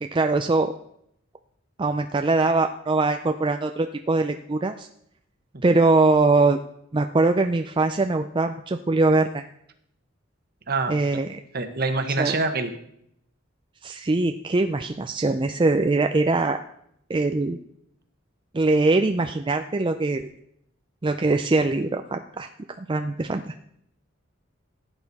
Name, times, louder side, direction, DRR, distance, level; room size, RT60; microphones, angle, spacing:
voice 1, 0.0-0.7 1.8-4.9 5.6-6.6 6.9-9.5 10.9-11.4 12.2-12.3 13.8-16.6 17.1-17.6 18.5-20.3 21.0-22.5 22.8-23.5, right 3 dB, 25° right, 6 dB, 0.5 m, -22 dB
voice 2, 10.7-11.2 11.5-12.7, right 3 dB, 50° right, 7 dB, 1.3 m, -26 dB
15.0 x 9.0 x 4.2 m, 0.73 s
head